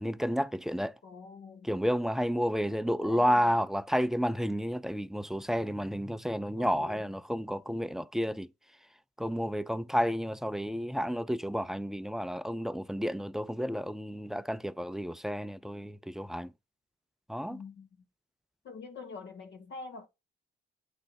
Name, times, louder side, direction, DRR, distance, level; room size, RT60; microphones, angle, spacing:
voice 1, 0.0-0.9 1.6-8.5 9.2-16.5 17.3-17.6, equal, ahead, 0.4 m, -31 dB
voice 2, 1.0-1.7 3.0-3.5 6.6-7.0 17.5-17.9 18.6-20.1, left 4 dB, 65° left, 1.6 m, -45 dB
8.2 x 3.3 x 5.7 m
cardioid pair, 90°, 20 cm